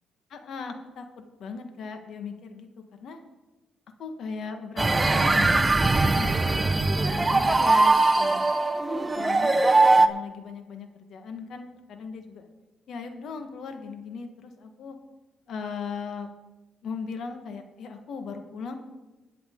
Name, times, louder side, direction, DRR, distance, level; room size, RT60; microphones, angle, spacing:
voice 1, 0.3-2.7 3.0-3.2 4.0-5.7 6.1-8.5 8.9-9.6 10.0-12.5 12.9-15.0 15.5-16.3 16.8-18.7, left 5 dB, 70° left, 6 dB, 1.6 m, -38 dB
sound 1, 4.8-10.1, right 2 dB, 20° right, 0.8 m, -21 dB
20.5 x 7.8 x 3.8 m, 1.1 s
cardioid pair, 90°, 0 cm